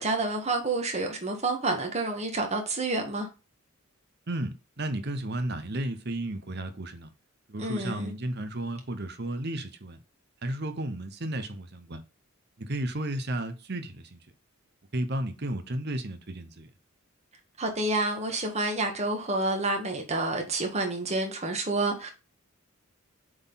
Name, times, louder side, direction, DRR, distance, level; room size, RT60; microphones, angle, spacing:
voice 1, 0.0-3.3 7.6-8.1 17.6-22.1, right 2 dB, 30° right, 1.6 m, -29 dB
voice 2, 4.3-7.1 7.5-10.0 10.4-12.0 12.6-14.2 14.9-16.7, right 1 dB, 50° right, 0.9 m, -33 dB
7.8 x 4.0 x 4.0 m
head